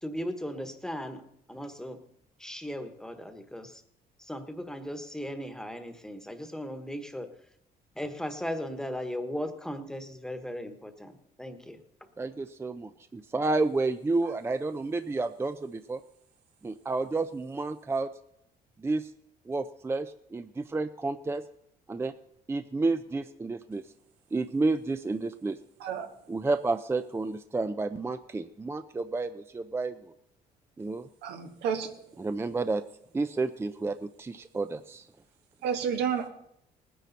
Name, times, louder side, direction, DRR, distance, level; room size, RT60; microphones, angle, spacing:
voice 1, 0.0-1.2 1.5-2.0 2.4-3.8 4.2-7.3 7.9-11.8, equal, 5° left, 8 dB, 1.3 m, -37 dB
voice 2, 12.2-16.0 16.6-18.1 18.8-19.1 19.5-21.4 21.9-22.1 22.5-23.8 24.3-25.6 26.3-30.1 30.8-31.1 32.2-32.8 33.1-35.1, right 3 dB, 15° right, 11 dB, 0.4 m, -30 dB
voice 3, 25.8-26.1 31.2-31.9 35.6-36.3, right 7 dB, 80° right, 5 dB, 1.6 m, -30 dB
19.0 x 10.0 x 4.1 m, 0.75 s
cardioid pair, 110°, 17 cm